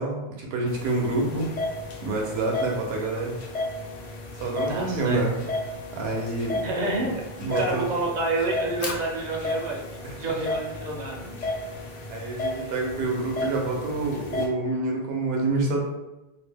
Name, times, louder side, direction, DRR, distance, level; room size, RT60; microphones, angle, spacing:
voice 1, 0.0-1.5 2.0-3.4 4.4-5.3 5.9-6.6 7.4-7.9 10.0-10.2 12.1-15.8, right 2 dB, 70° right, -1 dB, 0.9 m, -27 dB
sound 1, 0.7-14.5, left 2 dB, 60° left, 0.5 m, -34 dB
voice 2, 4.7-5.4 6.6-7.2 7.5-11.4 12.6-12.7, right 2 dB, 55° right, -2 dB, 0.5 m, -29 dB
Fire, 8.5-14.7, left 4 dB, 85° left, 0.9 m, -43 dB
2.5 x 2.1 x 3.3 m, 1.0 s
omnidirectional pair, 1.1 m